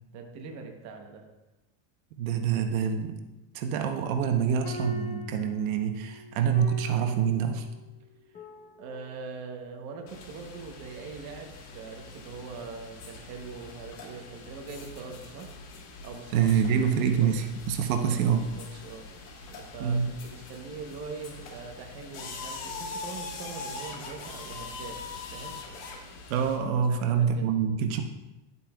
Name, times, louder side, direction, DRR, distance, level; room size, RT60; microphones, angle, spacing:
voice 1, 0.1-1.2 8.3-8.4 8.8-15.5 16.0-16.7 17.2-17.3 18.0-19.1 19.5-25.0 25.3-25.6 26.7-27.5, right 4 dB, 40° right, 3 dB, 1.0 m, -42 dB
voice 2, 2.2-3.2 3.5-7.7 16.3-18.5 19.8-20.1 26.3-28.0, right 7 dB, 85° right, 6 dB, 1.0 m, -26 dB
sound 1, 4.4-9.5, left 2 dB, 20° left, 0.8 m, -43 dB
sound 2, 10.1-26.6, left 4 dB, 40° left, 1.3 m, -43 dB
11.0 x 8.2 x 2.4 m, 1.0 s
cardioid pair, 175°, 41 cm